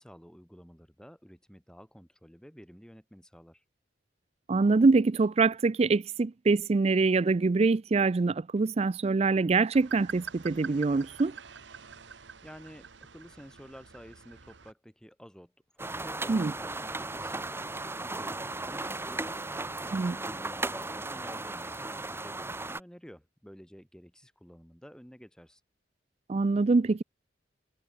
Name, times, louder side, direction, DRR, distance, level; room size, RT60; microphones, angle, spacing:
voice 1, 0.0-3.6 12.4-19.5 19.9-25.6, equal, 5° left, 3.4 m, -51 dB
voice 2, 4.5-11.3 16.3-16.5 19.9-20.2 26.3-27.0, right 3 dB, 35° right, 0.4 m, -24 dB
sound 1, 9.7-14.7, right 6 dB, 75° right, 1.3 m, -46 dB
sound 2, 15.8-22.8, right 2 dB, 15° right, 1.2 m, -36 dB
head